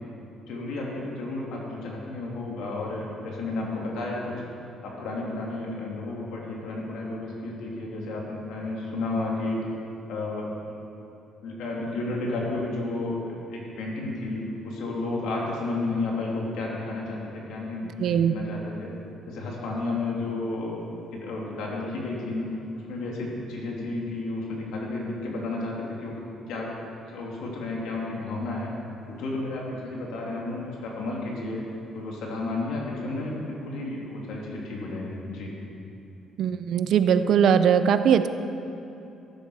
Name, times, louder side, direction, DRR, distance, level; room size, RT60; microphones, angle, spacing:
voice 1, 0.5-4.4 4.8-9.6 10.1-10.5 11.4-18.9 19.3-20.8 21.1-22.4 22.7-26.1 26.5-26.7 27.1-28.7 29.1-31.6 31.9-35.5, left 2 dB, 85° left, -3 dB, 2.8 m, -32 dB
voice 2, 17.8-18.3 36.4-38.3, right 8 dB, 60° right, 11 dB, 0.5 m, -21 dB
14.0 x 10.5 x 4.9 m, 2.9 s
cardioid pair, 145°, 0 cm